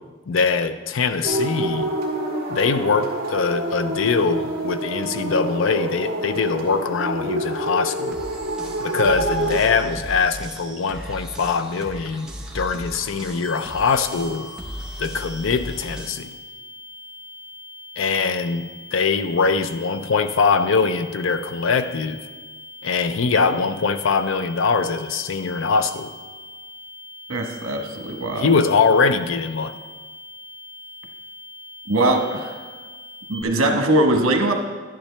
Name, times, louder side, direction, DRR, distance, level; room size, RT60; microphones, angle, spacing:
voice 1, 0.3-1.9 2.5-8.2 8.8-14.5 15.0-16.4 18.0-22.2 22.8-26.1 28.4-29.8, left 4 dB, 65° left, 11 dB, 0.5 m, -22 dB
sound 1, 1.2-9.6, right 1 dB, 50° right, 1.8 m, -27 dB
sound 2, 7.9-16.1, equal, 5° right, 1.0 m, -36 dB
sound 3, 13.4-33.4, left 2 dB, 35° right, 0.9 m, -42 dB
voice 2, 27.3-28.5 31.9-32.5 33.3-34.5, right 1 dB, 85° right, 3 dB, 1.2 m, -21 dB
11.0 x 10.0 x 3.3 m, 1.4 s
head